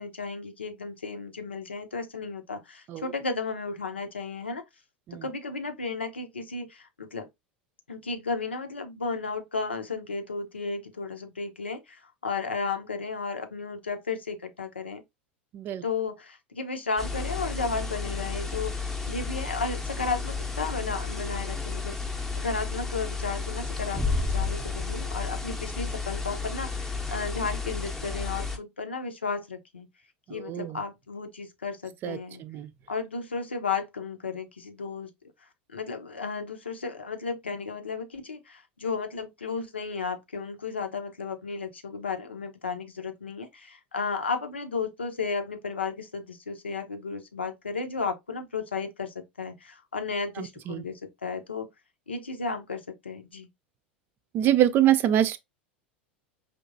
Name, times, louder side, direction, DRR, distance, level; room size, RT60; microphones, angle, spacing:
voice 1, 0.0-4.6 5.2-7.3 7.9-15.0 15.8-29.9 30.3-32.4 32.9-35.1 35.7-51.7 52.1-53.5, left 4 dB, 80° left, 0.8 m, -34 dB
sound 1, 17.0-28.6, left 4 dB, 5° left, 0.8 m, -32 dB
voice 2, 30.3-30.8 32.0-32.7 50.4-50.8 54.3-55.4, right 11 dB, 40° right, 0.5 m, -25 dB
5.1 x 2.9 x 2.6 m
figure-of-eight pair, 80°, 6 cm